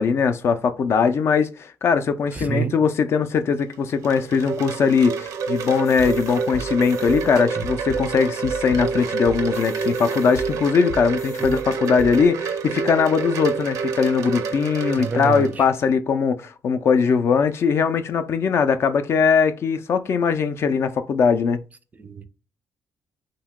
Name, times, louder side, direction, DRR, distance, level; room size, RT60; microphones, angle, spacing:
voice 1, 0.0-21.6, left 5 dB, 50° left, 0.4 m, -20 dB
voice 2, 2.3-2.7 7.6-7.7 11.4-11.6 15.0-15.7 22.0-22.2, right 5 dB, 30° right, 0.4 m, -28 dB
Wind chime, 3.6-15.8, right 5 dB, 85° right, 0.5 m, -28 dB
sound 1, 5.6-12.2, equal, 80° left, 0.7 m, -37 dB
2.8 x 2.2 x 3.5 m
cardioid pair, 105°, 6 cm